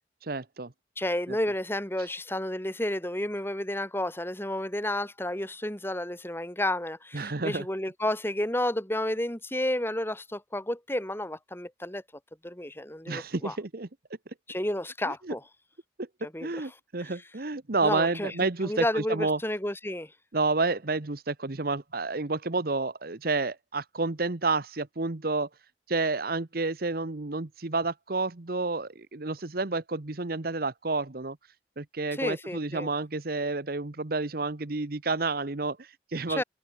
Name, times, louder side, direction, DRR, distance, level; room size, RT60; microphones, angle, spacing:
voice 1, 0.2-0.7 1.3-1.4 7.1-7.6 13.1-13.9 15.1-15.3 16.0-16.1 16.4-19.4 20.3-25.5 25.9-31.4 31.8-36.4, right 3 dB, 55° right, 1.1 m, -30 dB
voice 2, 1.0-12.0 12.4-13.6 14.5-15.4 16.2-16.5 17.8-20.1 32.1-32.9 36.4-36.5, left 1 dB, 10° left, 3.0 m, -31 dB
head